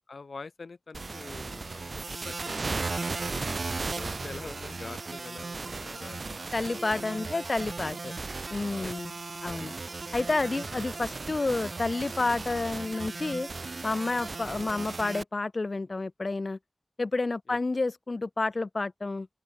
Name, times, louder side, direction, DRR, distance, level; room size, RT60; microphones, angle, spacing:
voice 1, 0.1-3.3 3.8-7.5 8.8-8.9 17.5-17.6, left 4 dB, 85° left, 3.8 m, -46 dB
sound 1, 0.9-15.2, right 3 dB, 65° right, 5.6 m, -36 dB
voice 2, 6.5-8.2 8.5-9.1 9.4-9.7 10.1-13.5 13.8-16.6 17.0-19.3, left 3 dB, 55° left, 1.0 m, -30 dB
open air
wide cardioid pair, 75°, 0 cm